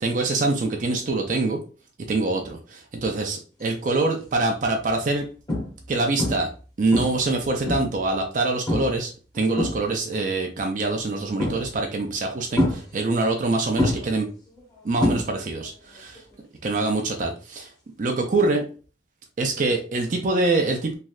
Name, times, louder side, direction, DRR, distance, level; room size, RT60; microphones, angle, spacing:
voice 1, 0.0-1.6 2.1-5.3 5.9-6.5 6.8-14.3 14.8-16.2 16.6-17.7 18.0-18.6 19.4-20.9, right 2 dB, 45° right, 3 dB, 0.4 m, -24 dB
sound 1, 3.9-4.2 4.8-4.9 5.5-5.9 6.2-6.6 6.9-8.1 8.7-9.0 9.3-10.2 11.4-11.9 12.6-13.4 13.8-15.7 15.9-16.3 18.4-18.5, left 1 dB, 20° left, 0.9 m, -27 dB
3.1 x 2.6 x 2.3 m, 0.37 s
head